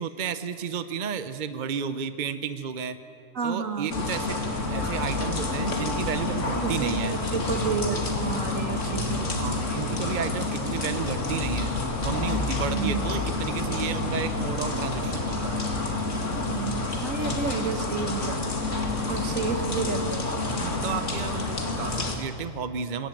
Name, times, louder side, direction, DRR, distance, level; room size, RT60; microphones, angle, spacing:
voice 1, 0.0-3.0 3.4-4.4 4.7-7.2 9.4-11.7 12.0-15.7 20.6-23.1, right 7 dB, 40° right, 10 dB, 0.9 m, -32 dB
voice 2, 3.4-3.9 6.6-9.3 12.6-13.1 16.4-18.4 19.1-20.3, right 6 dB, 75° right, 8 dB, 1.8 m, -31 dB
sound 1, 3.9-22.2, left 2 dB, 65° left, 2.5 m, -28 dB
22.0 x 17.0 x 9.1 m, 2.4 s
omnidirectional pair, 1.4 m